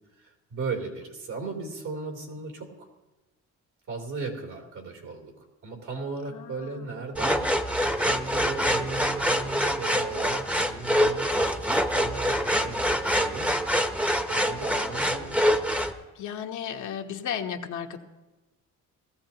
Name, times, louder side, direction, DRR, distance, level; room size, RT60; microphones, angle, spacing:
voice 1, 0.1-2.9 3.9-5.3 5.6-7.5 8.0-13.5 14.3-15.5, right 4 dB, 75° right, -1 dB, 3.3 m, -36 dB
voice 2, 6.3-6.9 16.1-18.0, left 8 dB, 75° left, 3 dB, 1.2 m, -35 dB
sound 1, 7.1-15.9, equal, 5° right, 0.9 m, -25 dB
18.5 x 15.0 x 2.9 m, 1.1 s
cardioid pair, 90°, 30 cm